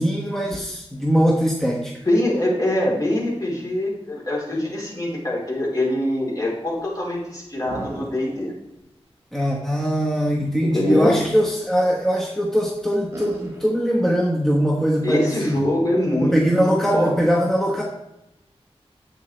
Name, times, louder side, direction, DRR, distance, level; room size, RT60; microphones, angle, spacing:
voice 1, 0.0-1.9 9.3-15.6 16.2-17.8, equal, 5° left, -2 dB, 1.3 m, -21 dB
voice 2, 2.1-8.5 10.6-11.2 15.0-16.7 16.9-17.1, left 1 dB, 35° left, -3 dB, 3.9 m, -23 dB
sound 1, 7.7-8.5 8.8-8.9 10.8-11.6 13.1-13.6, right 1 dB, 25° right, 3.4 m, -35 dB
11.5 x 8.3 x 3.3 m, 0.91 s
wide cardioid pair, 105°, 11 cm